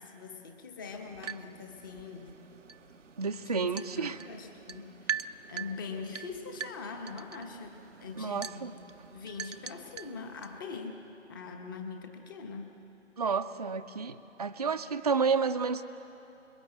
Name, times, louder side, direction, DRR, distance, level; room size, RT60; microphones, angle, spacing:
voice 1, 0.0-2.4 3.5-8.7 9.1-11.0 11.3-12.8, left 4 dB, 15° left, 5 dB, 1.2 m, -42 dB
sound 1, 0.9-10.6, right 7 dB, 80° right, 0.7 m, -43 dB
voice 2, 3.2-4.2 8.2-8.7 13.2-15.8, right 5 dB, 35° right, 7 dB, 0.6 m, -30 dB
26.0 x 22.0 x 8.0 m, 2.9 s
figure-of-eight pair, 150°, 36 cm